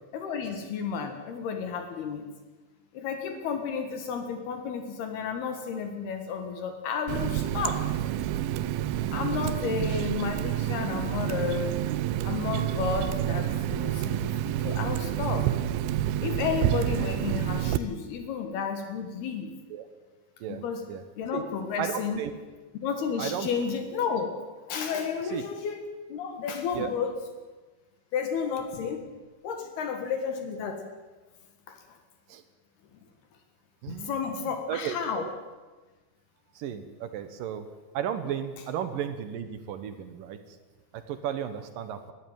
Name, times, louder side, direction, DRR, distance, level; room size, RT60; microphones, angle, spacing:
voice 1, 0.1-2.3 2.9-7.9 9.1-11.8 12.2-15.5 16.2-19.5 20.5-20.9 21.2-22.2 22.8-24.4 24.7-25.8 26.1-27.2 28.1-29.1 29.4-30.9 31.7-32.0 33.9-35.3, left 6 dB, 65° left, 6 dB, 3.4 m, -32 dB
Water tap faucet, 7.1-17.8, right 12 dB, 85° right, 2.1 m, -28 dB
voice 2, 9.5-9.8 19.7-19.9 20.4-20.6 20.9-21.0 21.3-21.4 21.8-21.9 22.2-22.3 23.2-23.5 25.3-25.4 26.7-26.9 32.3-32.4 33.8-35.3 36.6-37.7 37.9-40.4 41.1-42.1, right 9 dB, 70° right, 10 dB, 2.2 m, -34 dB
20.5 x 14.5 x 9.2 m, 1.3 s
omnidirectional pair, 5.3 m